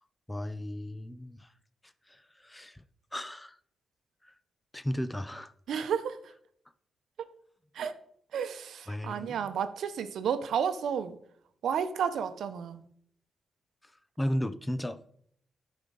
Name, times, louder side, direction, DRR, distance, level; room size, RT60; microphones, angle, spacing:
voice 1, 0.3-1.5 2.1-2.8 3.1-3.6 4.2-4.3 4.7-5.5 8.9-9.5 13.8-13.9 14.2-15.0, equal, 10° left, 0.6 m, -35 dB
voice 2, 5.7-6.2 7.7-7.9 8.3-11.2 11.6-12.8, right 7 dB, 80° right, 0.8 m, -31 dB
11.5 x 5.2 x 3.9 m
cardioid pair, 80°, 0 cm